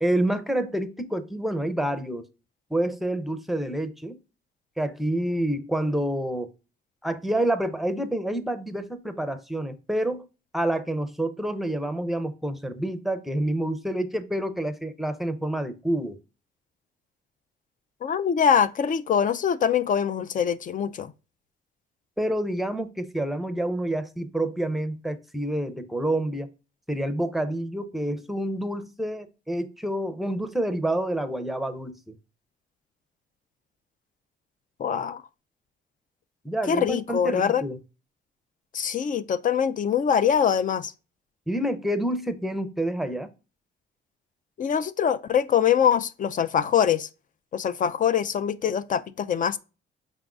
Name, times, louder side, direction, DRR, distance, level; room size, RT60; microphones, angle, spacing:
voice 1, 0.0-2.3 2.7-4.2 4.8-6.5 7.0-10.3 10.5-16.2 22.2-26.5 26.9-32.2 36.4-37.8 41.5-43.3, right 1 dB, ahead, 0.6 m, -28 dB
voice 2, 18.0-21.1 34.8-35.2 36.7-37.6 38.7-40.9 44.6-47.1 47.5-49.6, left 8 dB, 40° left, 0.4 m, -23 dB
5.3 x 3.6 x 2.4 m
cardioid pair, 90°, 20 cm